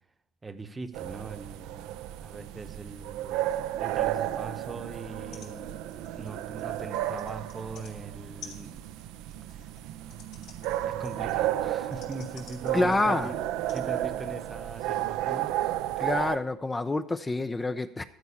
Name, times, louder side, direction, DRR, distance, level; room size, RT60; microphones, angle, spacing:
voice 1, 0.4-5.8 6.1-8.8 9.5-9.7 10.8-15.6, right 3 dB, 20° right, 0.9 m, -41 dB
sound 1, 0.9-16.4, right 13 dB, 70° right, 0.5 m, -33 dB
sound 2, 5.0-5.1 5.3-5.5 5.8-7.9 8.4-13.2 13.7-13.8 14.6-14.7, left 6 dB, 70° left, 3.1 m, -51 dB
voice 2, 12.7-13.3 16.0-18.0, left 2 dB, 20° left, 0.5 m, -27 dB
13.0 x 4.6 x 8.4 m
supercardioid pair, 80°, 0 cm